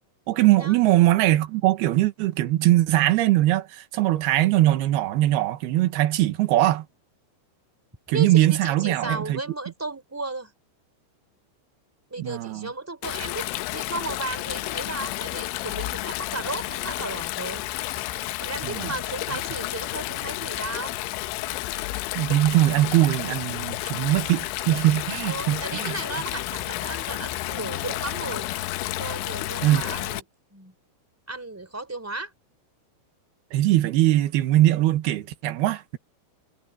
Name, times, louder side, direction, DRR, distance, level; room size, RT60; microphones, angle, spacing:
voice 1, 0.3-6.8 8.1-9.4 12.2-12.7 18.6-18.9 22.2-25.9 29.6-29.8 33.5-36.0, right 15 dB, 65° right, 2.8 m, -21 dB
voice 2, 8.1-10.5 12.1-17.7 18.4-21.0 25.3-28.5 29.0-30.2 30.5-30.7 31.3-32.3, right 2 dB, 5° right, 3.5 m, -34 dB
Stream, 13.0-30.2, left 17 dB, 85° left, 3.1 m, -31 dB
omnidirectional pair, 5.6 m